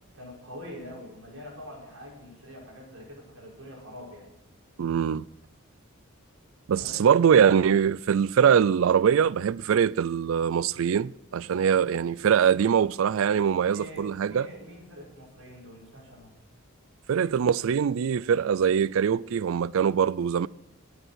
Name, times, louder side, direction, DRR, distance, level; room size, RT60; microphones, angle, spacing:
voice 1, 0.1-4.3 6.8-7.1 13.7-16.3, left 1 dB, 90° right, 5.1 m, -44 dB
voice 2, 4.8-5.3 6.7-14.5 17.1-20.5, right 7 dB, 70° right, 0.4 m, -23 dB
13.5 x 8.0 x 6.3 m
head